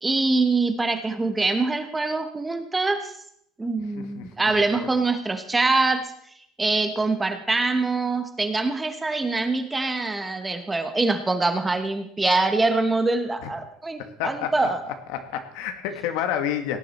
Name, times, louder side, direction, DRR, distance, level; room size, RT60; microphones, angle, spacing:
voice 1, 0.0-3.1 3.6-6.1 6.6-14.8, right 3 dB, 10° right, 8 dB, 1.1 m, -24 dB
voice 2, 4.0-4.9 13.4-13.5 14.0-14.7 15.1-16.8, left 9 dB, 85° left, 7 dB, 1.7 m, -30 dB
17.5 x 10.5 x 4.3 m, 0.69 s
cardioid pair, 165°, 0 cm